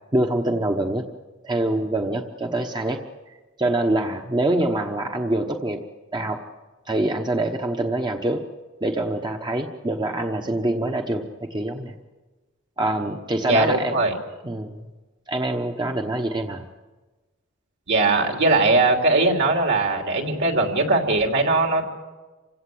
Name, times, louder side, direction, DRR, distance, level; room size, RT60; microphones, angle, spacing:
voice 1, 0.1-1.0 1.4-3.0 3.6-5.8 6.1-6.4 6.9-8.4 8.8-11.9 12.8-14.0 14.4-14.8 15.3-16.6, right 1 dB, 20° right, 4 dB, 1.1 m, -25 dB
voice 2, 13.5-14.1 17.9-21.9, right 2 dB, 60° right, 3 dB, 3.2 m, -20 dB
28.0 x 17.0 x 7.8 m, 1.2 s
head